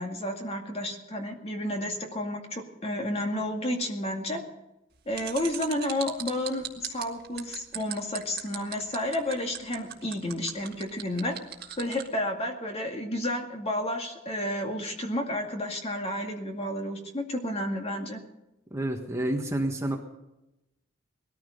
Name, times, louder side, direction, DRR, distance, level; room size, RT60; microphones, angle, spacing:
voice 1, 0.0-4.4 5.1-11.3 11.8-18.2, left 1 dB, 30° left, 3 dB, 2.1 m, -31 dB
sound 1, 5.1-12.1, right 10 dB, 50° right, 1.7 m, -38 dB
voice 2, 18.7-20.0, right 1 dB, 15° right, 2 dB, 1.4 m, -29 dB
20.0 x 14.0 x 5.3 m, 0.92 s
head